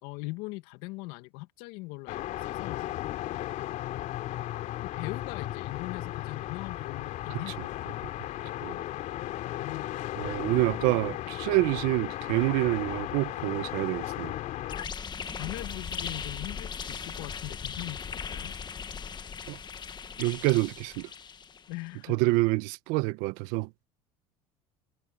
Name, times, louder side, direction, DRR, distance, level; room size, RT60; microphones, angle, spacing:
voice 1, 0.0-3.0 4.8-7.5 8.2-8.5 9.2-9.9 15.4-18.5 21.7-22.2, left 22 dB, 75° left, 2.3 m, -40 dB
sound 1, 2.1-14.9, left 14 dB, 60° left, 3.1 m, -35 dB
voice 2, 10.2-14.3 19.5-19.6 20.2-21.1 22.1-23.8, right 22 dB, 70° right, 1.5 m, -27 dB
sound 2, 14.7-21.7, left 6 dB, 30° left, 1.6 m, -38 dB
supercardioid pair, 90°, 15 cm